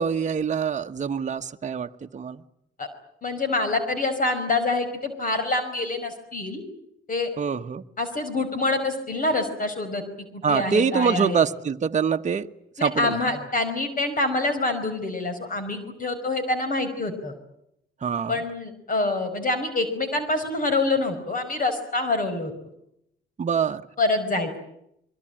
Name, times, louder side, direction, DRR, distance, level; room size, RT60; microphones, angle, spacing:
voice 1, 0.0-2.4 7.4-7.8 10.4-12.5 12.8-13.2 18.0-18.4 23.4-23.8, right 6 dB, 35° right, 1.2 m, -24 dB
voice 2, 3.2-6.6 7.1-7.3 8.0-10.0 10.3-11.4 12.8-17.3 18.3-22.5 24.0-24.6, left 2 dB, 45° left, 5.1 m, -26 dB
25.0 x 23.5 x 8.9 m
cardioid pair, 90°, 20 cm